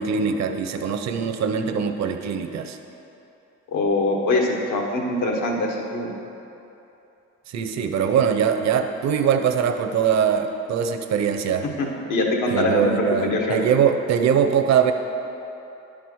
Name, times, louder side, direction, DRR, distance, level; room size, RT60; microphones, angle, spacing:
voice 1, 0.0-2.8 7.5-11.7 12.5-14.9, right 7 dB, 60° right, 6 dB, 0.7 m, -22 dB
voice 2, 3.7-6.1 11.8-13.6, left 2 dB, 85° left, 0 dB, 1.4 m, -23 dB
10.0 x 4.9 x 6.2 m, 2.9 s
cardioid pair, 90°, 30 cm